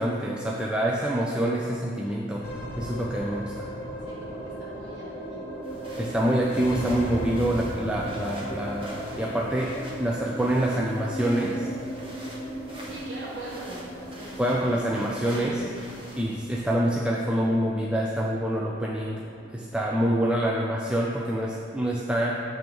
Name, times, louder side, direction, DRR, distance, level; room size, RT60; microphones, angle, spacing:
voice 1, 0.0-2.5 2.8-3.7 6.0-11.7 14.4-15.6 16.2-19.3 19.5-22.4, right 1 dB, 5° right, -3 dB, 0.3 m, -26 dB
sound 1, 2.4-20.9, equal, 55° left, 0.8 m, -37 dB
voice 2, 4.0-6.0 12.8-14.8 15.3-15.7 16.0-16.2, right 1 dB, 90° right, -6 dB, 1.3 m, -42 dB
sound 2, 5.6-16.6, equal, 30° right, 1.1 m, -46 dB
7.5 x 3.4 x 5.1 m, 2.5 s
head